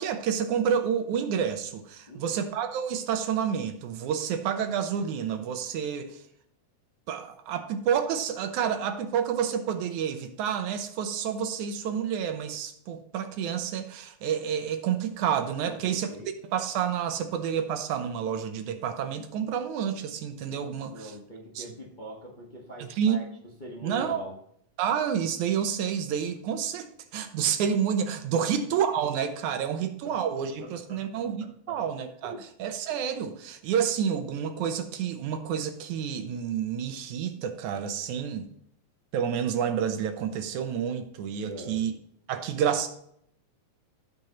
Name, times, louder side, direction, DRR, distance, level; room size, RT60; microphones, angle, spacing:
voice 1, 0.0-6.2 7.1-16.1 16.5-21.1 21.6-21.7 23.0-23.2 23.8-24.3 24.8-26.9 27.1-32.3 32.6-38.5 39.1-41.9 42.3-42.9, right 8 dB, 80° right, 8 dB, 2.3 m, -29 dB
voice 2, 2.1-2.4 15.6-16.3 20.8-23.3 23.6-24.4 28.4-28.5 29.8-31.8 32.2-32.5 41.4-41.9, equal, 25° left, -3 dB, 1.0 m, -44 dB
14.5 x 5.3 x 3.0 m, 0.70 s
omnidirectional pair, 3.4 m